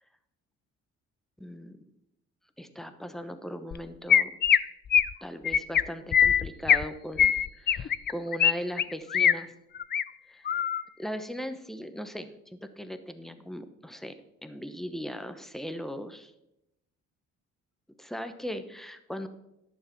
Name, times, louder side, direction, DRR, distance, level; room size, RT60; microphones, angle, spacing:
voice 1, 1.4-1.8 2.6-4.3 5.2-9.5 10.3-10.5 11.0-14.1 14.4-16.3 18.0-19.3, equal, ahead, 9 dB, 1.0 m, -38 dB
Chirp tweet, 3.7-3.8 4.1-4.6 4.9-5.1 5.5-5.8 6.1-6.8 7.2-8.5 8.8-9.3 9.8-10.0 10.5-10.8, left 9 dB, 35° left, 0.4 m, -22 dB
11.0 x 6.7 x 6.0 m, 0.87 s
cardioid pair, 90°, 30 cm